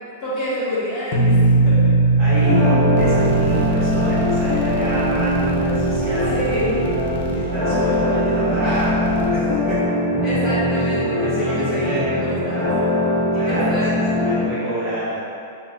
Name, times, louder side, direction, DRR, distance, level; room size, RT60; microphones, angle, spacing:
voice 1, 0.2-1.4 1.6-2.0 6.3-6.8 10.2-12.7 13.0-13.1 13.4-14.2, equal, 20° left, -11 dB, 1.2 m, -27 dB
sound 1, 1.1-6.0, right 3 dB, 40° left, 0.6 m, -19 dB
voice 2, 2.2-6.4 7.3-10.0 11.2-12.8 13.3-15.2, equal, 20° right, -17 dB, 1.2 m, -27 dB
sound 2, 2.4-14.4, left 1 dB, 60° left, 1.3 m, -21 dB
sound 3, 3.0-9.8, right 5 dB, 60° right, 0.6 m, -31 dB
5.1 x 2.7 x 2.3 m, 2.5 s
supercardioid pair, 170°, 0 cm